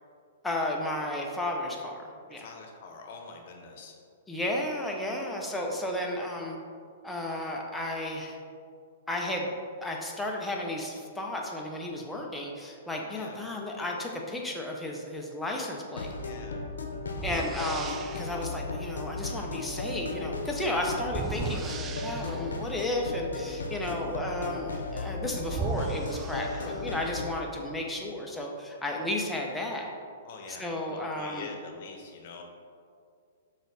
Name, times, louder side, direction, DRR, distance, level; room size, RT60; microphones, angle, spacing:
voice 1, 0.4-2.5 4.3-6.6 7.0-8.4 9.1-9.5 9.8-16.1 17.2-29.9 30.6-31.5, left 1 dB, 5° left, -1 dB, 0.9 m, -33 dB
voice 2, 2.3-4.0 13.1-13.4 16.2-16.6 20.8-21.0 23.8-24.1 26.4-26.8 29.1-29.3 30.2-32.4, left 4 dB, 55° left, 2 dB, 1.0 m, -45 dB
sound 1, 15.9-27.3, left 3 dB, 85° left, 0.7 m, -36 dB
sound 2, 16.2-16.4 17.1-18.4 21.0-22.6 24.9-25.0 25.4-27.1, right 6 dB, 20° right, 0.4 m, -36 dB
6.1 x 4.0 x 4.1 m, 2.3 s
hypercardioid pair, 120°, 0 cm